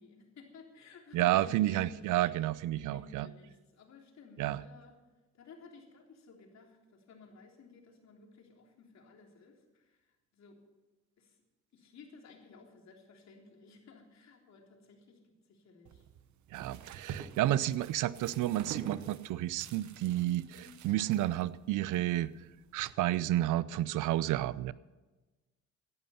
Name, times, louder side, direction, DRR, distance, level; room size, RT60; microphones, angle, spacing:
voice 1, 0.0-1.9 2.9-3.5 3.8-4.9 5.4-6.7 7.1-9.6 10.4-10.6 11.8-15.2 15.7-15.9 17.2-17.4 20.4-20.8, left 4 dB, 60° left, 1 dB, 3.6 m, -55 dB
voice 2, 1.1-3.3 4.4-4.6 16.5-22.3 22.7-24.7, right 14 dB, 85° right, 18 dB, 0.6 m, -31 dB
sound 1, 15.9-22.9, right 8 dB, 70° right, 1.0 m, -47 dB
17.5 x 11.0 x 5.7 m, 1.2 s
cardioid pair, 90°, 30 cm